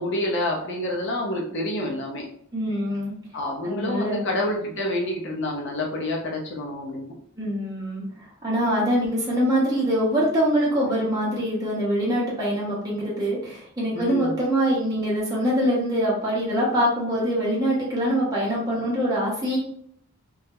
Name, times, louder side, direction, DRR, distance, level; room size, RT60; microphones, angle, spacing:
voice 1, 0.0-2.3 3.3-7.1 13.9-14.3, left 1 dB, 55° left, -1 dB, 0.6 m, -28 dB
voice 2, 2.5-3.1 3.6-4.3 7.4-8.0 8.4-19.6, equal, 15° right, -7 dB, 0.7 m, -24 dB
2.3 x 2.0 x 2.8 m, 0.65 s
head